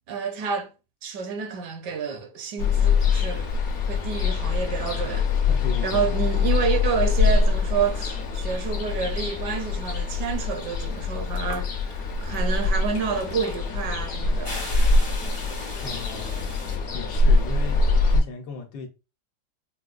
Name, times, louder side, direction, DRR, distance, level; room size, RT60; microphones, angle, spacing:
voice 1, 0.1-0.7 1.0-3.5 3.8-5.3 5.8-11.9 12.2-14.9, right 6 dB, 75° right, 1.3 m, -29 dB
Ocean, 2.6-18.2, left 4 dB, 55° left, 0.9 m, -24 dB
voice 2, 5.5-6.0 15.8-16.4 16.9-18.9, left 5 dB, 75° left, 1.3 m, -36 dB
sound 1, 11.4-12.0 12.3-16.8, left 2 dB, 40° left, 0.3 m, -39 dB
4.6 x 2.2 x 2.4 m
omnidirectional pair, 1.8 m